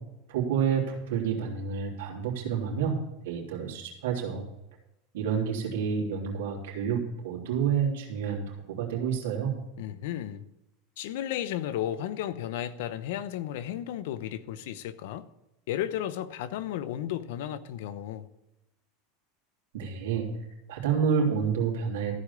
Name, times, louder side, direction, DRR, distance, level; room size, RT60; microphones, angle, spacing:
voice 1, 0.3-3.0 3.2-4.4 5.1-9.5 19.7-20.3 20.7-22.1, right 7 dB, 80° right, 3.3 m, -29 dB
voice 2, 9.8-10.4 11.0-15.3 15.7-18.3, left 11 dB, 75° left, 0.8 m, -34 dB
14.5 x 5.1 x 8.4 m
supercardioid pair, 110°, 0 cm